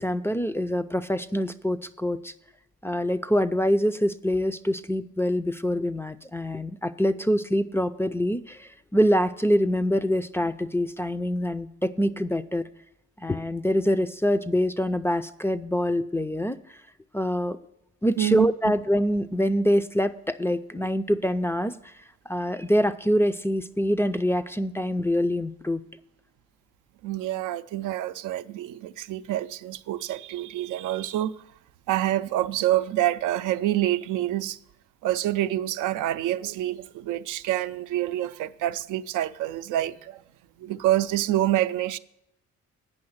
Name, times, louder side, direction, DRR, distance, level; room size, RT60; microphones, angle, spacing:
voice 1, 0.0-2.3 2.8-12.7 13.2-16.6 17.1-17.6 18.0-21.9 22.3-25.8, equal, 10° left, 0.4 m, -25 dB
voice 2, 18.2-18.7 27.0-31.3 31.9-34.6 35.0-40.2 40.6-42.0, right 13 dB, 80° right, 0.5 m, -27 dB
8.7 x 5.6 x 7.8 m
cardioid pair, 90°, 30 cm